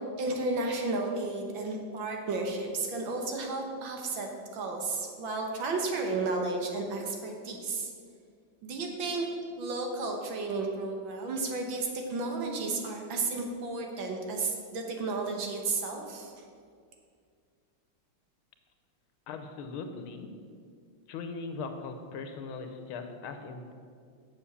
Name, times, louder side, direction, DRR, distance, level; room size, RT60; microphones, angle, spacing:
voice 1, 0.2-4.3 4.5-7.9 8.6-9.3 9.6-16.5, right 3 dB, 70° right, 2 dB, 1.9 m, -33 dB
voice 2, 19.3-20.3 21.1-23.7, left 4 dB, 80° left, 6 dB, 1.6 m, -39 dB
7.2 x 7.1 x 6.9 m, 2.2 s
omnidirectional pair, 2.3 m